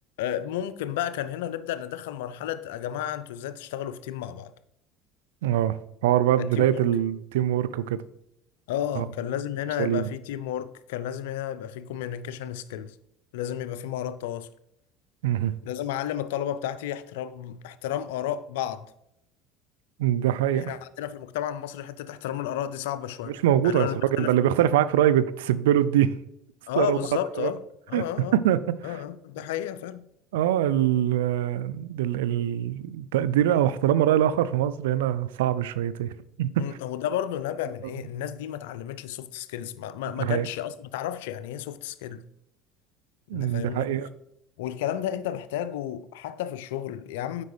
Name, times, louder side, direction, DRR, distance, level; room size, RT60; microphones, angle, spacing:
voice 1, 0.2-4.5 6.4-6.8 8.7-12.9 13.3-14.5 15.6-18.9 20.5-23.4 23.6-24.3 26.7-27.6 27.9-28.4 28.8-30.1 36.6-42.2 43.3-43.9 44.6-47.4, left 11 dB, 75° left, 0.4 m, -32 dB
voice 2, 5.4-5.8 6.0-8.0 9.0-9.1 9.8-10.1 15.2-15.5 20.0-20.7 23.3-23.9 24.2-26.1 26.8-27.0 27.4-27.5 27.9-28.0 28.3-28.8 30.3-36.1 36.4-36.6 40.2-40.5 43.3-44.1, right 11 dB, 80° right, 0.3 m, -23 dB
8.2 x 5.2 x 3.3 m
hypercardioid pair, 75°, 0 cm